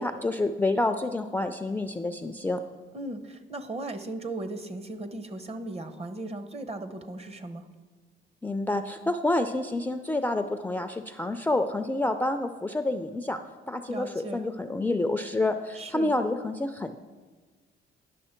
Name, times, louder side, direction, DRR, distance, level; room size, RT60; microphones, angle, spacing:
voice 1, 0.0-2.6 8.4-13.4 13.7-17.0, left 2 dB, 10° left, 7 dB, 0.3 m, -28 dB
voice 2, 2.9-7.7 13.9-14.5 15.7-16.1, right 2 dB, 30° right, 9 dB, 0.7 m, -37 dB
10.0 x 6.1 x 4.3 m, 1.4 s
cardioid pair, 90°, 20 cm